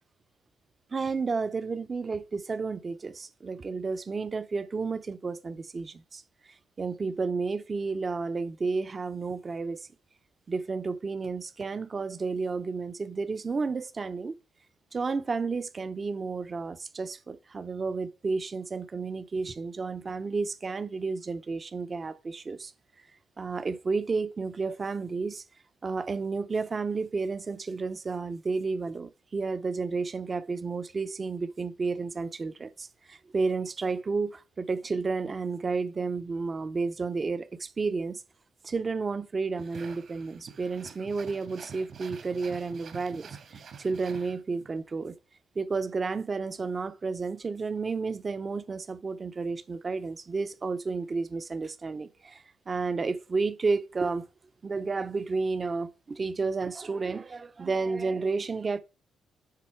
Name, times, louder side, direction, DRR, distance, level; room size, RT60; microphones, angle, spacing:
voice 1, 0.9-9.9 10.5-14.3 14.9-22.7 23.4-25.4 25.8-38.2 38.6-45.2 45.5-54.2 54.6-58.8, right 4 dB, 35° right, 0.8 m, -31 dB
sound 1, 39.6-44.8, right 6 dB, 60° right, 1.9 m, -47 dB
10.5 x 4.1 x 4.5 m
cardioid pair, 90°, 0 cm